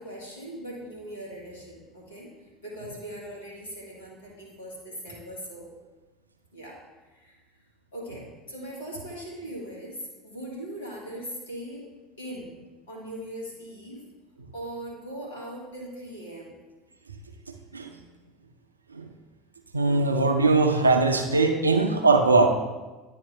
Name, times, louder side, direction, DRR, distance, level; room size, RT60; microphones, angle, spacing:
voice 1, 0.0-2.3 2.6-5.7 6.5-7.4 7.9-11.9 12.2-12.5 12.9-14.0 14.5-16.5, right 1 dB, 80° left, -4 dB, 1.9 m, -40 dB
voice 2, 19.7-22.5, right 3 dB, 90° right, 5 dB, 0.5 m, -21 dB
9.9 x 3.5 x 3.3 m, 1.2 s
figure-of-eight pair, 70°, 0 cm